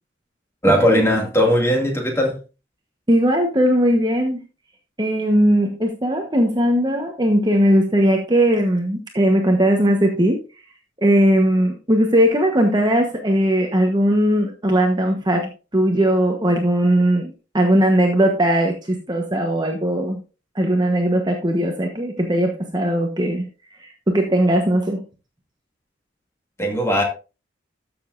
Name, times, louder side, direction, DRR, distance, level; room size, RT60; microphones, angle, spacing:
voice 1, 0.6-2.4 26.6-27.0, equal, 15° left, 2.2 m, -18 dB
voice 2, 3.1-4.4 5.0-10.4 11.0-20.2 20.5-23.5 23.7-25.0, right 1 dB, 20° right, 1.1 m, -19 dB
13.0 x 7.0 x 2.6 m
head